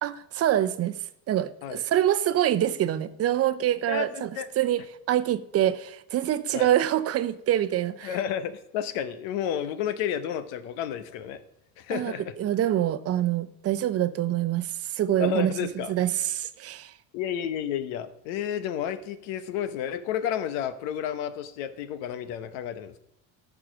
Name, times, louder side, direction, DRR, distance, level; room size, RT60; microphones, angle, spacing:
voice 1, 0.0-0.9 1.3-4.3 4.6-4.8 5.1-8.2 11.9-16.9, right 12 dB, 45° right, 0.6 m, -25 dB
voice 2, 3.9-4.5 6.5-6.7 8.0-11.4 11.8-12.3 15.2-15.9 17.1-23.0, left 9 dB, 90° left, 1.0 m, -31 dB
13.5 x 4.9 x 6.1 m
cardioid pair, 120°, 35 cm